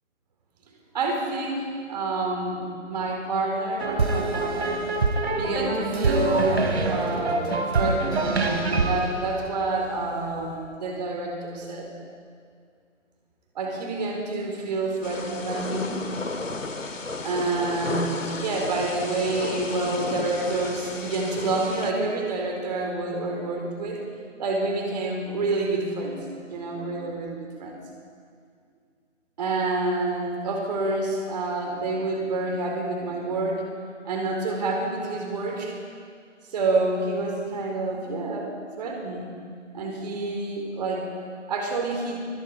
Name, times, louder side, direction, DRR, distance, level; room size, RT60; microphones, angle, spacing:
voice 1, 0.9-4.8 5.4-11.9 13.5-16.0 17.2-24.0 24.4-26.2 26.5-27.8 29.4-33.6 34.0-35.8 36.5-38.5 38.8-39.3 39.7-41.1 41.5-42.2, right 2 dB, 35° right, 1 dB, 4.4 m, -28 dB
sound 1, 3.8-10.1, right 3 dB, 55° right, 3.4 m, -25 dB
Thunder / Rain, 15.0-21.9, left 3 dB, 85° left, 2.2 m, -33 dB
25.5 x 22.0 x 4.8 m, 2.2 s
figure-of-eight pair, 155°, 38 cm